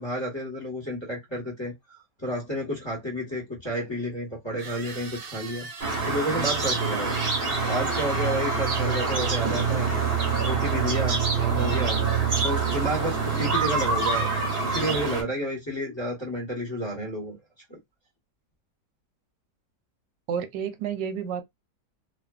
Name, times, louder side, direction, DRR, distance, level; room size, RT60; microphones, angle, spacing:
voice 1, 0.0-5.7 6.0-7.2 7.6-10.0 10.4-12.0 12.4-14.3 14.6-17.4, equal, 20° left, 1.0 m, -31 dB
sound 1, 3.0-3.1 4.6-10.7, right 4 dB, 65° right, 1.2 m, -42 dB
sound 2, 5.8-15.2, right 5 dB, 40° right, 1.0 m, -25 dB
voice 2, 20.3-21.4, right 8 dB, 85° right, 1.2 m, -30 dB
2.5 x 2.5 x 2.3 m
omnidirectional pair, 1.8 m